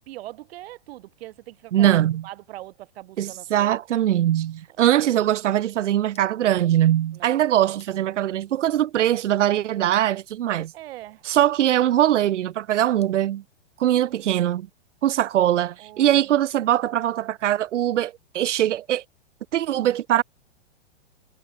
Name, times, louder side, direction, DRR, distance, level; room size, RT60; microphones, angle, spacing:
voice 1, 0.1-3.7 7.1-7.4 10.7-11.2 13.8-14.3 15.8-16.3, right 16 dB, 60° right, 1.4 m, -41 dB
voice 2, 1.7-2.2 3.2-10.7 11.2-13.4 13.8-14.7 15.0-19.0 19.5-20.2, right 12 dB, 85° right, 0.6 m, -21 dB
sound 1, 4.5-13.4, left 7 dB, 15° left, 8.0 m, -66 dB
hypercardioid pair, 130°, 35 cm